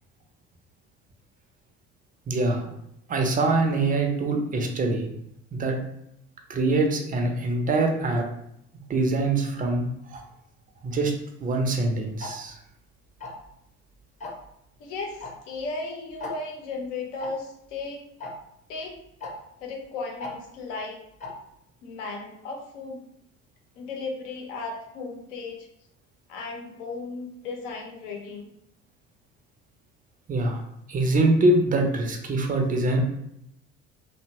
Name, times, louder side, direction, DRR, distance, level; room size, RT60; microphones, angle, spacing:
voice 1, 2.3-2.7 3.1-5.1 5.5-5.8 6.5-8.2 8.9-10.2 10.8-11.1 11.4-12.6 30.3-30.6 30.9-33.0, right 2 dB, 20° right, 3 dB, 0.5 m, -24 dB
Tick-tock, 12.2-12.3 13.2-13.5 14.2-14.5 15.2-15.3 15.6-15.7 16.2-16.3 17.2-17.3 18.2-18.3 19.2-19.3 20.2-20.3 21.2-21.3, left 3 dB, 20° left, 0.7 m, -35 dB
voice 2, 14.8-18.0 18.7-19.0 19.6-21.0 21.8-23.0 23.8-25.7 26.3-28.5, left 3 dB, 70° left, 1 dB, 0.7 m, -35 dB
2.7 x 2.1 x 2.8 m, 0.78 s
figure-of-eight pair, 55°, 38 cm